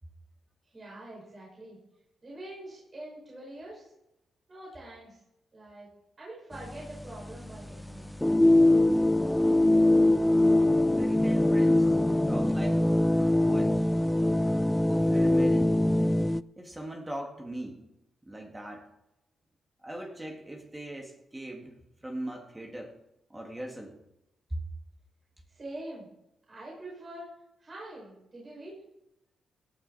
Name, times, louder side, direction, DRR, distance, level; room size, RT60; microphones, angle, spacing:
voice 1, 0.6-1.8 2.2-3.9 4.5-5.2 5.5-5.9 6.2-8.1 25.5-26.1 26.5-27.3 27.6-28.8, right 1 dB, 35° right, -5 dB, 5.9 m, -44 dB
sound 1, 6.5-16.4, left 1 dB, 10° left, 0.3 m, -23 dB
voice 2, 11.0-12.0 12.3-12.8 13.5-13.8 14.8-15.9 16.6-17.8 18.3-18.9 19.8-21.8 22.0-23.0 23.3-24.0 24.5-24.6, right 1 dB, 15° right, 1 dB, 2.1 m, -39 dB
17.5 x 10.0 x 4.2 m, 0.86 s
cardioid pair, 85°, 0 cm